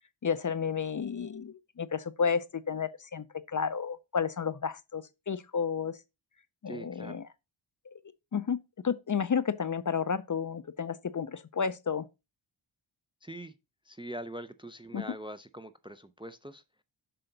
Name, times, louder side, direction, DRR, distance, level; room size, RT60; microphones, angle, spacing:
voice 1, 0.2-6.0 6.6-7.2 8.3-8.6 8.8-12.1 14.9-15.0, left 6 dB, 40° left, 0.5 m, -31 dB
voice 2, 6.7-7.2 13.2-13.5 13.8-16.6, right 1 dB, 10° right, 0.4 m, -43 dB
7.7 x 5.6 x 3.9 m
wide cardioid pair, 105°, 49 cm